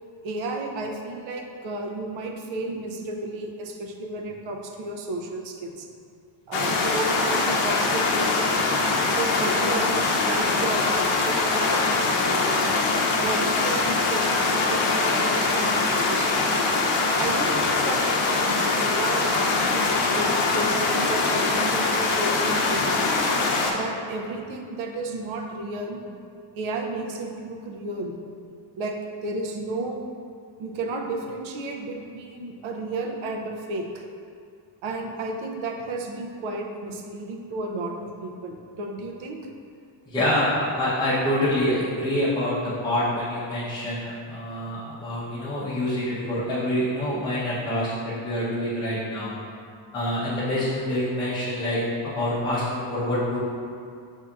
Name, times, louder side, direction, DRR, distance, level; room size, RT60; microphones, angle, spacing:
voice 1, 0.2-5.9 6.5-12.7 13.2-16.6 17.2-19.3 19.7-23.2 23.7-26.2 26.6-28.1 28.8-29.0 29.2-30.0 30.6-34.0 34.8-39.4, right 2 dB, 70° right, 2 dB, 0.6 m, -33 dB
sound 1, 6.5-23.7, left 3 dB, 85° left, 0.7 m, -23 dB
voice 2, 40.1-42.6 42.8-49.3 49.9-53.4, left 1 dB, 10° left, -10 dB, 0.7 m, -26 dB
6.6 x 2.7 x 2.4 m, 2.4 s
cardioid pair, 150°, 49 cm